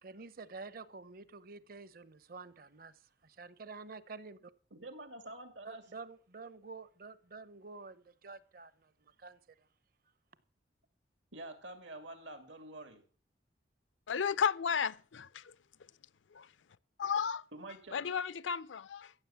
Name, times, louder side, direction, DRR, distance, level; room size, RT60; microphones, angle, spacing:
voice 1, 0.0-4.5 5.6-9.7, right 4 dB, 50° right, 0.8 m, -49 dB
voice 2, 4.7-5.8 11.3-13.0 17.5-18.0, right 1 dB, 85° right, 2.7 m, -47 dB
voice 3, 14.1-15.5 16.3-16.5 17.0-17.4 17.9-19.1, left 7 dB, 90° left, 0.6 m, -33 dB
15.0 x 7.7 x 7.1 m
head